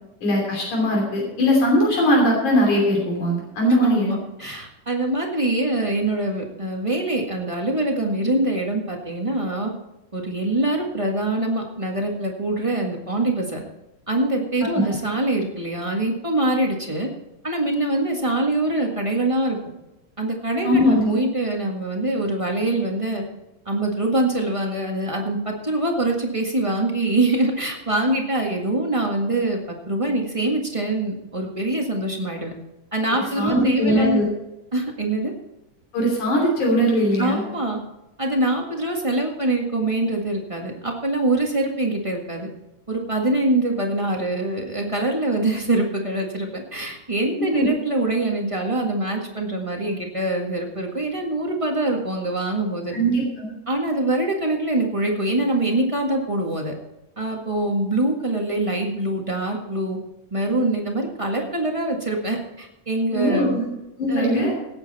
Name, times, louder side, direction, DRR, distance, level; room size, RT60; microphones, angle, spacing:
voice 1, 0.2-4.2 14.6-14.9 20.6-21.2 33.4-34.3 35.9-37.4 47.4-47.7 52.9-53.5 63.1-63.7 64.0-64.5, equal, 70° left, -1 dB, 4.4 m, -20 dB
voice 2, 3.8-9.7 10.1-13.6 14.1-17.1 17.4-19.6 20.2-23.2 23.6-32.5 32.9-34.2 34.7-35.3 37.2-37.8 38.2-42.5 42.9-52.9 53.7-56.7 57.2-60.0 60.3-63.6 64.1-64.5, right 2 dB, 25° right, 0 dB, 0.6 m, -24 dB
17.5 x 9.1 x 4.2 m, 0.95 s
omnidirectional pair, 3.7 m